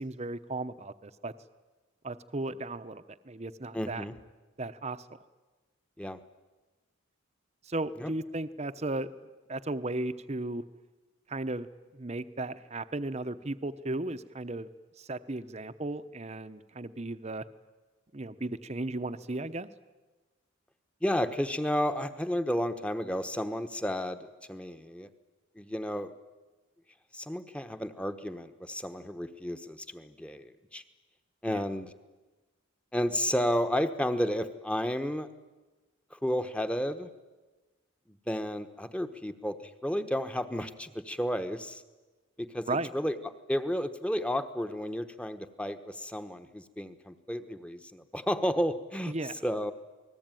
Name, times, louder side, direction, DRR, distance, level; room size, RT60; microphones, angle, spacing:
voice 1, 0.0-1.3 2.0-4.0 4.6-5.0 7.6-9.1 9.5-10.6 11.3-11.7 11.9-14.7 15.0-17.4 18.1-19.7 31.5-31.6 42.7-42.9 49.1-49.3, right 2 dB, 30° right, 11 dB, 0.8 m, -35 dB
voice 2, 3.7-4.2 6.0-6.2 8.0-8.1 21.0-25.1 25.6-26.1 27.1-30.8 31.4-31.9 32.9-35.3 36.1-37.1 38.3-41.8 42.4-43.2 43.5-49.1 49.4-49.7, equal, 5° left, 9 dB, 1.1 m, -32 dB
28.0 x 20.0 x 9.2 m, 1.2 s
head